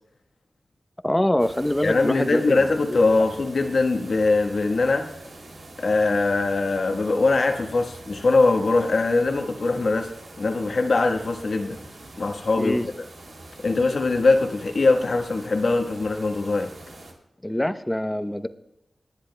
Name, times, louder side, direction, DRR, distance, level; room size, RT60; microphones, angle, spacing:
voice 1, 1.0-3.0 12.6-12.9 17.4-18.5, left 1 dB, 15° left, 9 dB, 0.7 m, -24 dB
sound 1, 1.4-17.1, right 2 dB, 80° right, 2.8 m, -44 dB
voice 2, 1.8-5.1 5.8-10.1 10.4-11.8 12.2-13.0 13.6-16.7, left 3 dB, 70° left, 4 dB, 1.2 m, -22 dB
26.5 x 10.5 x 2.2 m, 0.87 s
wide cardioid pair, 70°, 0 cm